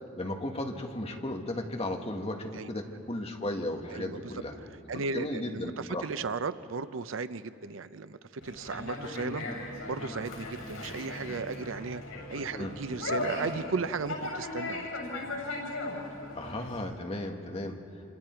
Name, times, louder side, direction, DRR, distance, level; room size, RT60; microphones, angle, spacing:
voice 1, 0.2-4.6 4.9-6.1 12.5-12.7 16.3-17.8, left 1 dB, 30° left, 3 dB, 1.7 m, -35 dB
voice 2, 3.9-4.3 4.6-8.2 8.4-9.5 9.9-12.0 12.3-14.9 17.6-17.7, right 4 dB, 70° right, 13 dB, 0.6 m, -35 dB
Conversation, 8.4-16.8, left 2 dB, 85° left, 7.3 m, -37 dB
28.0 x 26.0 x 4.6 m, 2.6 s
head